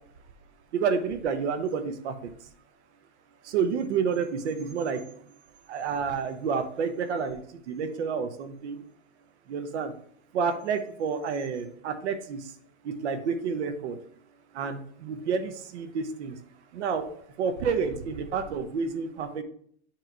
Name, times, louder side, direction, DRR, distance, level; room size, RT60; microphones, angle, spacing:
voice 1, 0.7-2.3 3.4-5.1 5.7-8.8 9.5-9.9 10.3-12.5 12.8-14.0 14.5-16.4 16.7-19.4, right 6 dB, 70° right, 9 dB, 0.9 m, -29 dB
7.7 x 3.1 x 4.7 m, 0.63 s
supercardioid pair, 180°, 35 cm